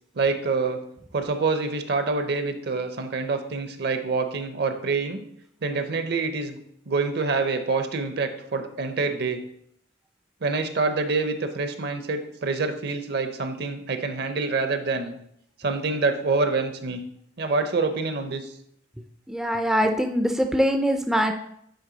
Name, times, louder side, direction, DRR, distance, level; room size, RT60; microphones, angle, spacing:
voice 1, 0.1-0.8 1.1-5.2 5.6-6.6 6.9-9.4 10.4-15.1 15.6-17.0 17.4-18.5, right 4 dB, 60° right, 8 dB, 0.6 m, -26 dB
voice 2, 19.3-21.3, equal, 5° right, 5 dB, 0.3 m, -23 dB
8.6 x 3.3 x 3.9 m, 0.72 s
head